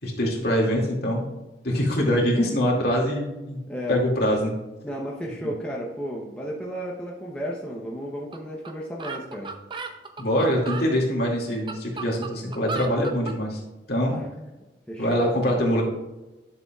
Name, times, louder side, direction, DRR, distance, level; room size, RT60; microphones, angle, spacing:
voice 1, 0.0-1.3 1.6-3.6 3.9-4.5 10.2-13.6 13.9-14.2 15.0-15.8, equal, 60° left, -2 dB, 2.3 m, -23 dB
voice 2, 3.7-4.0 4.8-9.5 14.1-14.2 14.9-15.2, equal, 5° left, -4 dB, 0.9 m, -33 dB
sound 1, 8.3-8.4 8.7-8.8 9.0-10.9 11.4-13.4, right 4 dB, 25° right, 0.6 m, -35 dB
11.0 x 6.9 x 2.4 m, 1.1 s
head